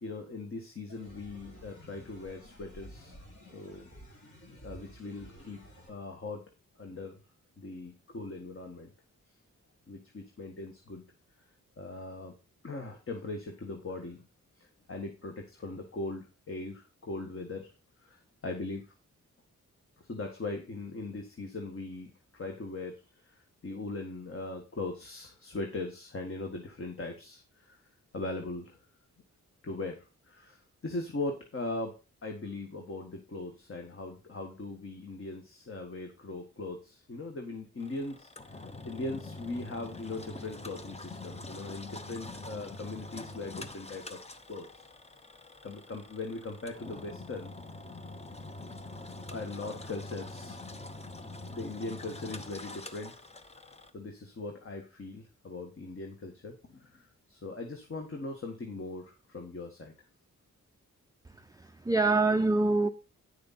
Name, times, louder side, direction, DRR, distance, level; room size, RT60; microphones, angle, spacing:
voice 1, 0.0-3.1 3.4-3.8 4.6-6.4 6.8-7.2 7.6-8.9 9.9-11.0 11.8-12.3 12.6-14.2 14.6-17.7 18.0-18.9 20.0-23.3 23.6-27.8 28.1-28.8 29.6-31.9 32.2-44.2 44.5-44.8 45.6-47.6 49.3-50.6 51.5-53.1 53.9-59.9, left 2 dB, 45° left, 1.6 m, -40 dB
sound 1, 0.9-5.9, equal, 60° left, 4.1 m, -52 dB
Engine, 37.8-53.9, left 2 dB, 20° left, 0.9 m, -45 dB
voice 2, 61.6-62.9, right 3 dB, 10° right, 0.5 m, -25 dB
9.4 x 6.6 x 4.2 m
wide cardioid pair, 90°, 31 cm